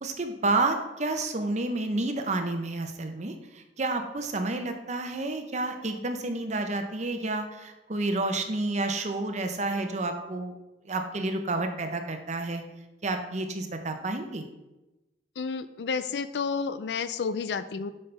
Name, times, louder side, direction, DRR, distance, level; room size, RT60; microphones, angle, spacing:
voice 1, 0.0-10.5 10.8-12.6 13.0-14.5, right 2 dB, 40° right, 6 dB, 0.8 m, -30 dB
voice 2, 15.4-17.9, left 5 dB, 70° left, 13 dB, 0.4 m, -31 dB
7.9 x 5.5 x 3.4 m, 1.0 s
head